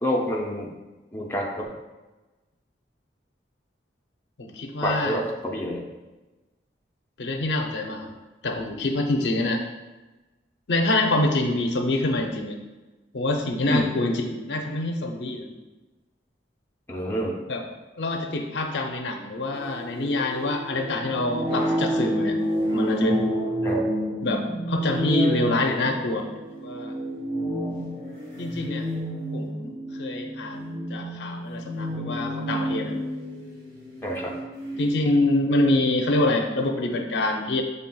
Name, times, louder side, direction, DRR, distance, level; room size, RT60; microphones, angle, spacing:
voice 1, 0.0-0.7 1.1-1.7 4.8-5.8 13.7-13.9 16.9-17.3 23.6-23.9 34.0-34.3, equal, 10° left, -3 dB, 0.5 m, -27 dB
voice 2, 4.4-5.2 7.2-8.1 8.4-9.6 10.7-12.6 13.1-15.5 17.5-17.6 18.0-22.4 22.7-23.4 24.2-26.3 26.6-26.9 28.4-28.9 29.3-33.0 34.8-37.6, left 2 dB, 70° left, 3 dB, 0.5 m, -25 dB
sound 1, 19.6-34.9, equal, 30° right, 1.5 m, -30 dB
7.0 x 3.4 x 2.2 m, 1.1 s
head